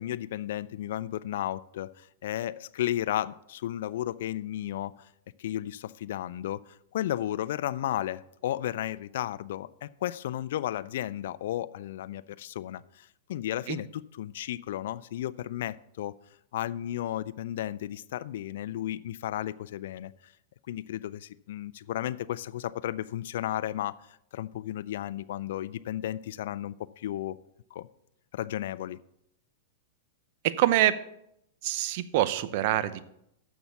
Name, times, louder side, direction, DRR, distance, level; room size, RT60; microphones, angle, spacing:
voice 1, 0.0-5.1 5.4-16.1 16.5-20.3 20.7-27.4 27.7-27.9 28.3-29.0, left 12 dB, 70° left, 0.3 m, -34 dB
voice 2, 30.4-31.0 31.6-33.0, right 13 dB, 55° right, 0.6 m, -25 dB
7.1 x 6.2 x 6.9 m
hypercardioid pair, 120°, 0 cm